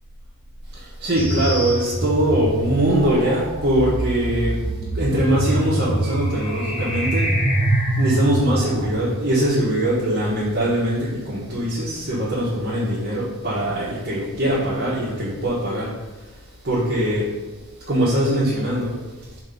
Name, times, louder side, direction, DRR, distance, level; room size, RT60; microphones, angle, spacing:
voice 1, 0.7-4.6 4.9-7.3 8.0-15.9 16.6-17.3 17.9-18.9, right 1 dB, 45° right, -8 dB, 1.4 m, -22 dB
sound 1, 1.1-9.0, right 1 dB, 10° left, 1.9 m, -24 dB
5.7 x 3.4 x 5.4 m, 1.2 s
head